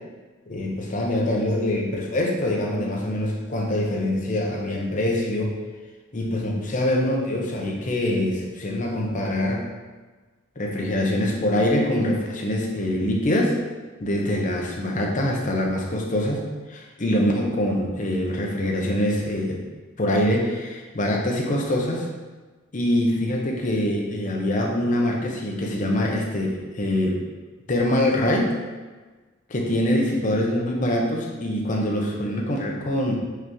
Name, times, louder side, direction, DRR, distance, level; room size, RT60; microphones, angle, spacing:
voice 1, 0.5-5.6 6.1-9.6 10.6-13.6 14.0-19.6 20.0-22.1 22.7-27.2 27.7-28.5 29.5-33.1, left 1 dB, 40° left, 0 dB, 0.7 m, -24 dB
4.8 x 3.5 x 3.0 m, 1.3 s
head